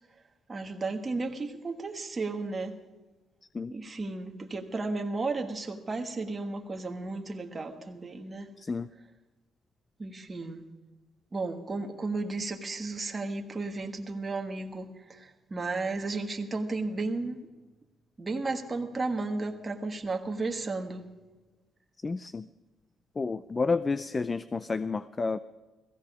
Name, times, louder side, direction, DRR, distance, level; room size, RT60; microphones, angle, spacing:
voice 1, 0.5-2.8 3.7-8.5 10.0-10.7 11.3-17.4 18.2-21.1, right 3 dB, 25° right, 3 dB, 1.6 m, -34 dB
voice 2, 8.6-8.9 22.0-22.5 23.2-25.4, left 4 dB, 30° left, 14 dB, 0.5 m, -30 dB
16.0 x 15.5 x 5.0 m, 1.2 s
cardioid pair, 90°, 0 cm